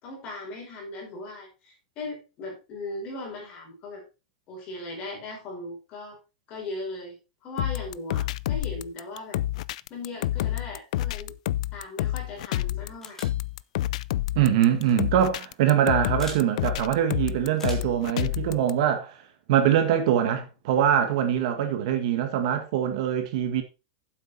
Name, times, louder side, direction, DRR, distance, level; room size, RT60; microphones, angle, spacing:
voice 1, 0.0-4.0 4.5-6.2 6.5-7.2 7.4-9.4 9.9-11.3 11.7-13.2, left 2 dB, 30° left, 5.1 m, -38 dB
sound 1, 7.6-18.7, left 14 dB, 60° left, 0.4 m, -29 dB
sound 2, 13.0-13.4 14.7-14.9 16.2-16.5 17.5-18.0, left 2 dB, 10° left, 2.4 m, -42 dB
voice 2, 14.4-19.1 19.5-23.6, right 10 dB, 50° right, 1.7 m, -23 dB
9.4 x 7.8 x 4.2 m
supercardioid pair, 175°, 4 cm